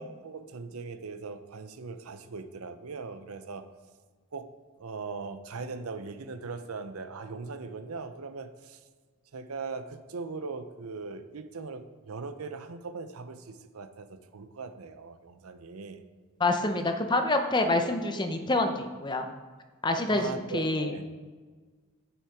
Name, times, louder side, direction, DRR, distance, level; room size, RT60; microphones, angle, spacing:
voice 1, 0.0-3.6 4.3-4.5 4.8-8.8 9.3-16.0 20.1-21.0, right 4 dB, 75° right, 10 dB, 0.7 m, -40 dB
voice 2, 16.4-19.2 19.8-21.0, left 2 dB, 20° left, 5 dB, 0.6 m, -27 dB
10.0 x 6.2 x 4.7 m, 1.4 s
head